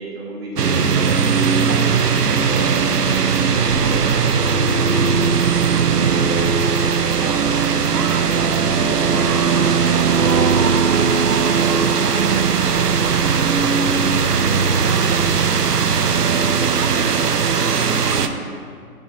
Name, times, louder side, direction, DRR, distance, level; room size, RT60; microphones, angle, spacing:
voice 1, 0.0-2.3 2.9-3.1 7.2-8.8 12.1-12.4 17.9-18.4, right 2 dB, 40° right, -3 dB, 1.7 m, -34 dB
sound 1, 0.6-18.3, right 6 dB, 80° right, 0.7 m, -18 dB
voice 2, 2.0-2.7 3.0-5.5 8.7-10.8 12.0-12.5 12.7-15.5 15.8-16.5 18.0-18.4, equal, 15° left, -9 dB, 1.2 m, -37 dB
9.6 x 6.2 x 3.6 m, 2.3 s
figure-of-eight pair, 145°, 47 cm